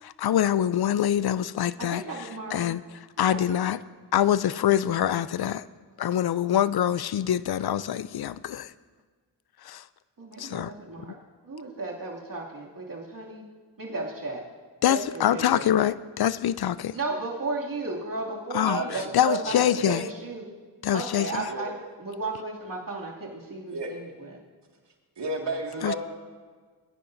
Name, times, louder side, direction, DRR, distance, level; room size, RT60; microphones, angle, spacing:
voice 1, 0.0-3.8 4.1-5.7 6.0-8.7 9.6-9.8 10.4-10.7 11.1-11.2 14.8-17.0 18.5-20.1 20.8-21.5 25.8-25.9, left 10 dB, 60° left, 17 dB, 0.5 m, -25 dB
voice 2, 1.8-2.7 3.3-3.6 10.2-11.1 11.4-13.5 13.8-14.4 14.9-15.7 16.9-20.5 20.9-21.7 22.0-24.4, right 3 dB, 50° right, -2 dB, 2.6 m, -35 dB
voice 3, 18.6-19.9 21.5-21.8 23.7-23.9 25.2-26.0, right 3 dB, 70° right, 0 dB, 2.2 m, -32 dB
21.0 x 10.0 x 2.7 m, 1.5 s
cardioid pair, 50°, 43 cm